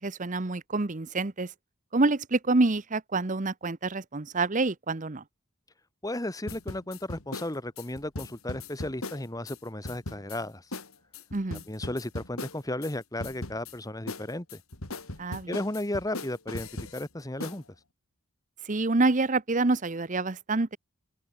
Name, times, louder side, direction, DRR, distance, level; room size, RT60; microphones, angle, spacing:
voice 1, 0.0-1.5 1.9-5.2 11.3-11.6 15.2-15.6 18.6-20.8, right 3 dB, 35° right, 0.9 m, -27 dB
voice 2, 6.0-10.6 11.7-14.6 15.5-17.6, left 1 dB, 15° left, 1.6 m, -34 dB
sound 1, 6.5-9.6 9.8-10.4 10.7-10.9 11.1-12.9 13.2-13.7 14.1-17.0 17.4-17.6, left 2 dB, 85° left, 4.2 m, -38 dB
head